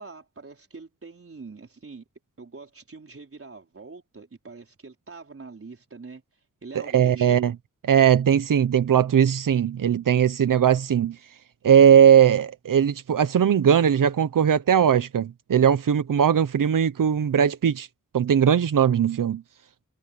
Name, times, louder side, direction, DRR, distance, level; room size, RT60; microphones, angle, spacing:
voice 1, 0.0-2.0 2.4-6.2 6.6-7.4, right 4 dB, 45° right, 4.7 m, -44 dB
voice 2, 6.7-7.5 7.8-11.1 11.6-17.9 18.1-19.4, right 8 dB, 85° right, 0.9 m, -19 dB
wide cardioid pair, 105°, 32 cm